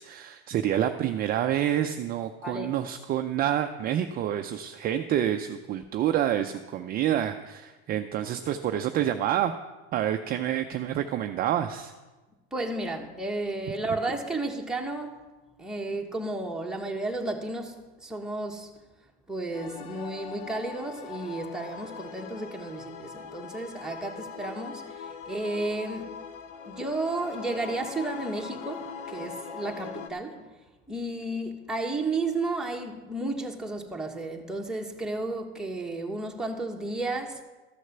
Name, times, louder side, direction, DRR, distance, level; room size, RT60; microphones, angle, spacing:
voice 1, 0.0-9.5 9.9-11.9, right 11 dB, 30° right, 0.5 m, -28 dB
voice 2, 2.4-2.7 12.5-15.2 15.6-18.7 19.3-26.2 26.6-30.5 30.9-37.4, right 2 dB, ahead, 1.3 m, -33 dB
sound 1, 19.5-30.1, left 6 dB, 65° left, 0.9 m, -41 dB
13.5 x 6.4 x 6.7 m
supercardioid pair, 125°, 31 cm